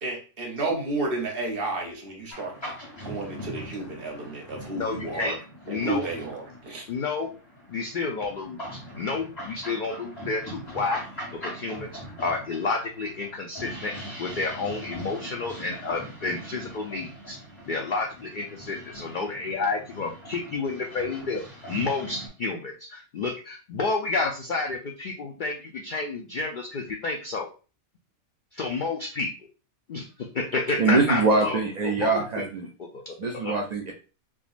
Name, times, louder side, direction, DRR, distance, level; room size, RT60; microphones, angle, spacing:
voice 1, 0.0-2.7 3.0-5.4 5.7-6.8, right 2 dB, 50° right, 0 dB, 1.0 m, -32 dB
sound 1, 2.3-22.3, equal, 35° left, 2.1 m, -41 dB
voice 2, 4.7-5.4 5.7-6.1 6.9-7.3 7.7-11.0 11.4-13.9 14.2-17.4 17.7-21.4 21.7-27.5 28.5-29.3 29.9-31.6 31.8-32.4 32.8-33.5, left 3 dB, 70° left, 2 dB, 0.4 m, -30 dB
voice 3, 30.8-32.7 33.2-33.9, right 3 dB, 80° right, 1 dB, 0.3 m, -23 dB
3.6 x 2.9 x 2.4 m, 0.35 s
omnidirectional pair, 1.3 m